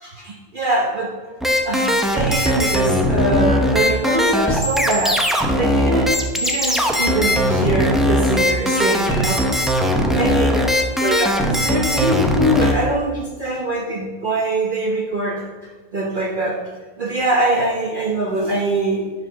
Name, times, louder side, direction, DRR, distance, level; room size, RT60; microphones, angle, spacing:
voice 1, 0.0-1.3 1.6-5.2 5.6-16.6 17.0-19.1, right 2 dB, 45° right, -2 dB, 1.0 m, -23 dB
sound 1, 1.4-12.7, equal, ahead, 0.6 m, -19 dB
9.9 x 4.8 x 6.0 m, 1.3 s
omnidirectional pair, 1.3 m